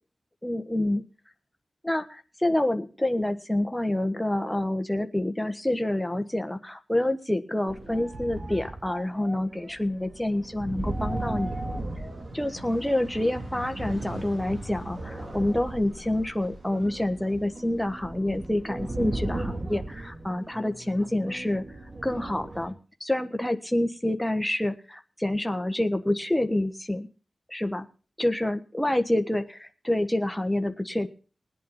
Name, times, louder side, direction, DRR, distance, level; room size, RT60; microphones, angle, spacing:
voice 1, 0.4-1.0 1.8-11.6 12.3-21.6 22.0-22.7 23.0-27.1 27.5-27.9 28.2-31.1, left 1 dB, 10° left, 7 dB, 1.4 m, -27 dB
sound 1, 7.7-13.0 13.8-22.7, right 2 dB, 45° right, 3.4 m, -37 dB
sound 2, 10.2-18.3 18.7-19.9, right 1 dB, 75° right, 6.4 m, -43 dB
20.0 x 8.6 x 4.3 m, 0.37 s
cardioid pair, 45°, 0 cm